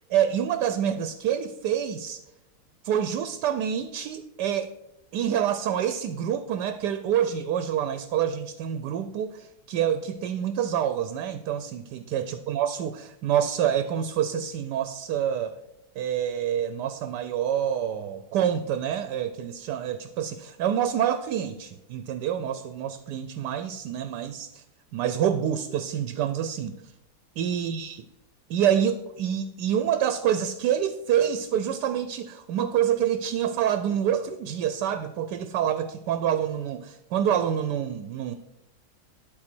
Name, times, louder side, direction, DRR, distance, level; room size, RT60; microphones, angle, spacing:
voice 1, 0.1-2.2 2.8-4.7 5.1-15.6 16.0-24.6 24.9-26.9 27.4-28.0 28.5-38.3, right 9 dB, 75° right, 11 dB, 1.1 m, -27 dB
11.0 x 4.2 x 6.0 m, 0.91 s
omnidirectional pair, 2.0 m